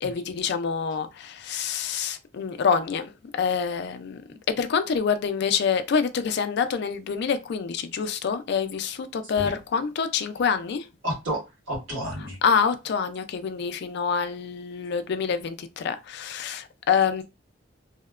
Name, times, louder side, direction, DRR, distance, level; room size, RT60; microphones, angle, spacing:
voice 1, 0.0-4.2 4.6-10.9 12.2-17.2, left 6 dB, 60° left, 0.3 m, -26 dB
voice 2, 11.0-12.4, equal, 75° right, 1.6 m, -31 dB
2.7 x 2.1 x 2.4 m
head